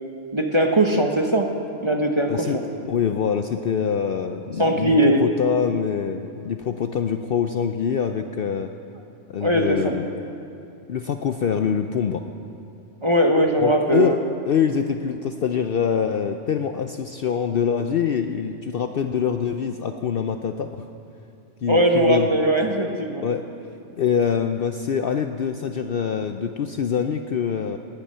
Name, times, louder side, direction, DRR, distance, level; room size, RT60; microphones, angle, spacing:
voice 1, 0.3-1.5 1.8-2.5 4.6-5.2 9.4-9.9 13.0-14.1 21.7-23.2, right 1 dB, 25° right, 3 dB, 0.9 m, -20 dB
voice 2, 2.9-8.7 9.3-10.1 10.9-12.2 13.6-14.2 14.5-20.9 21.6-22.3 23.2-23.4 24.0-27.8, left 7 dB, 60° left, 7 dB, 0.6 m, -24 dB
18.5 x 10.5 x 5.6 m, 2.6 s
omnidirectional pair, 1.3 m